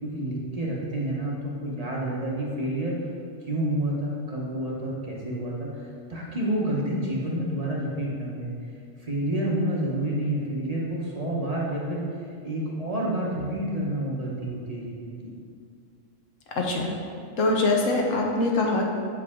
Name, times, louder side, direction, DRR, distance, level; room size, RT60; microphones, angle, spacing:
voice 1, 0.0-3.0 3.5-8.5 9.0-12.0 12.4-15.3, right 1 dB, 30° right, -5 dB, 1.0 m, -29 dB
voice 2, 16.5-17.0 17.4-18.9, left 2 dB, 75° left, 0 dB, 1.2 m, -23 dB
7.5 x 4.8 x 3.6 m, 2.3 s
omnidirectional pair, 1.3 m